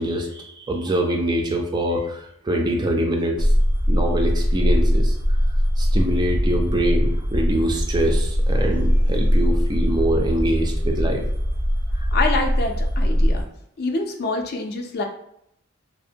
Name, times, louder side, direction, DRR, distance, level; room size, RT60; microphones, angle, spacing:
voice 1, 0.0-3.5 3.9-5.2 5.8-11.2, right 1 dB, 20° right, 2 dB, 0.3 m, -24 dB
sound 1, 3.4-13.4, equal, 80° right, 0.7 m, -21 dB
voice 2, 12.1-13.4 13.8-15.0, left 3 dB, 50° left, 3 dB, 0.4 m, -26 dB
2.5 x 2.1 x 2.7 m, 0.74 s
head